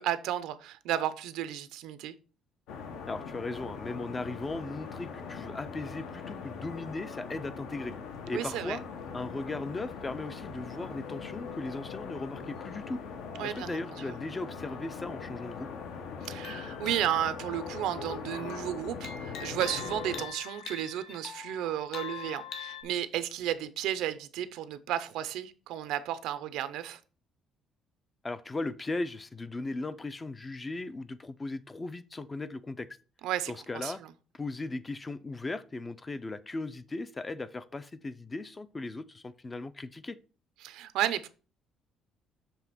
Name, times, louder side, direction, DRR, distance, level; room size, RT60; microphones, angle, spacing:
voice 1, 0.0-2.1 8.3-8.8 13.4-14.2 16.2-27.0 33.2-34.1 40.6-41.3, right 11 dB, 90° right, 0.7 m, -33 dB
sound 1, 2.7-20.3, left 5 dB, 85° left, 1.1 m, -41 dB
voice 2, 3.1-7.9 8.3-8.8 9.1-13.0 13.4-15.7 28.2-32.9 33.5-34.0 34.3-40.2, left 2 dB, 15° left, 0.4 m, -37 dB
sound 2, 16.3-18.5 19.0-22.8, left 8 dB, 60° left, 1.4 m, -43 dB
7.0 x 3.4 x 5.9 m
cardioid pair, 160°, 0 cm